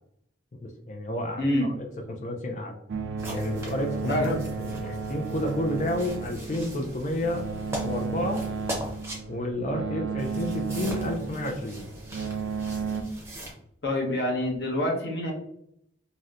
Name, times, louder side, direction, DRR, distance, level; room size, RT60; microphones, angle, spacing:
voice 1, 0.6-2.8 3.3-7.5 7.8-8.4 9.3-11.9, left 1 dB, 40° left, 3 dB, 0.3 m, -31 dB
voice 2, 1.4-1.7 4.1-4.3 13.8-15.3, left 1 dB, 60° left, -2 dB, 1.0 m, -26 dB
sound 1, 2.9-13.0, right 5 dB, 70° right, 0.4 m, -33 dB
sound 2, 3.2-9.2 10.2-13.5, equal, 15° right, 0.6 m, -40 dB
4.0 x 2.1 x 2.4 m, 0.73 s
head